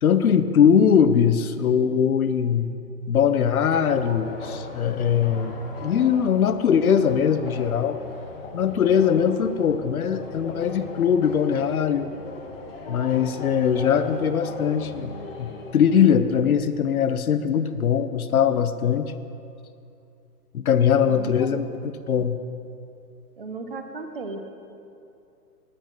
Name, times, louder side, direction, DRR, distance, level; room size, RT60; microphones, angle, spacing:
voice 1, 0.0-2.7 3.1-8.0 8.5-12.1 12.9-19.1 20.5-22.4, left 7 dB, 60° left, 11 dB, 0.7 m, -21 dB
sound 1, 3.6-16.1, left 3 dB, 35° left, 1.0 m, -38 dB
voice 2, 21.0-21.6 23.4-24.4, right 3 dB, 35° right, 6 dB, 0.7 m, -35 dB
9.9 x 9.1 x 5.9 m, 2.6 s
hypercardioid pair, 175°, 49 cm